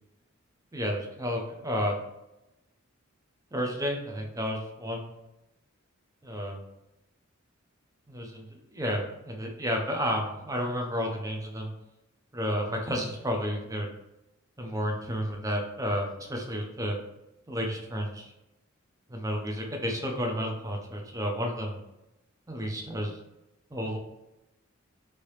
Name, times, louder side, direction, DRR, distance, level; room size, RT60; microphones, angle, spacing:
voice 1, 0.7-2.0 3.5-5.1 6.2-6.6 8.1-11.7 12.3-13.9 14.6-17.0 17.5-18.3 19.1-21.8 22.5-23.2 23.7-24.0, equal, 15° right, 2 dB, 0.6 m, -31 dB
3.3 x 2.7 x 3.1 m, 0.92 s
head